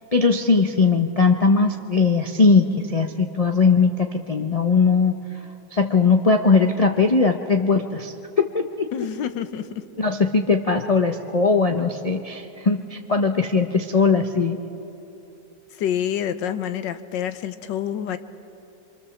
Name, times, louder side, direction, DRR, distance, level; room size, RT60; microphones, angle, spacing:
voice 1, 0.1-5.1 5.7-8.9 10.0-14.6, left 4 dB, 40° left, 4 dB, 0.5 m, -19 dB
voice 2, 8.9-9.8 15.7-18.2, left 9 dB, 90° left, 11 dB, 1.5 m, -27 dB
25.0 x 24.0 x 7.1 m, 2.9 s
omnidirectional pair, 1.9 m